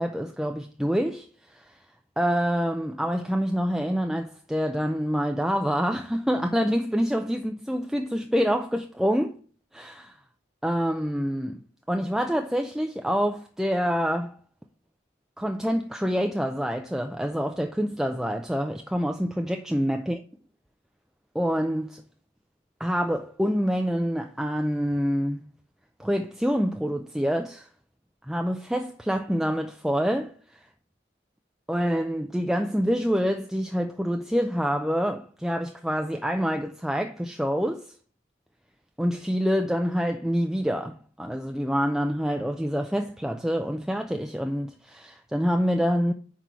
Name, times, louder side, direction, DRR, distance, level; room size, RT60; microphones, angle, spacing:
voice 1, 0.0-1.8 2.2-9.4 9.7-10.2 10.6-11.6 11.9-14.4 15.4-20.2 21.3-22.0 22.8-25.4 26.0-27.7 28.3-30.3 31.7-37.9 39.0-46.1, equal, ahead, 0.3 m, -26 dB
5.9 x 4.7 x 5.6 m
head